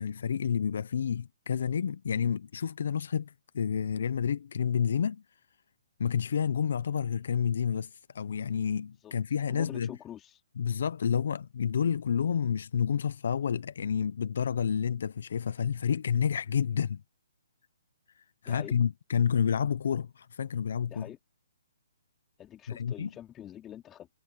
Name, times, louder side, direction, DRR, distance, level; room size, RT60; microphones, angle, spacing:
voice 1, 0.0-5.2 6.0-9.9 10.6-17.0 18.4-21.1 22.7-23.1, left 7 dB, 65° left, 0.9 m, -29 dB
voice 2, 9.5-10.4 18.4-18.7 20.9-21.2 22.4-24.1, left 11 dB, 20° left, 3.0 m, -45 dB
hypercardioid pair, 140°, 0 cm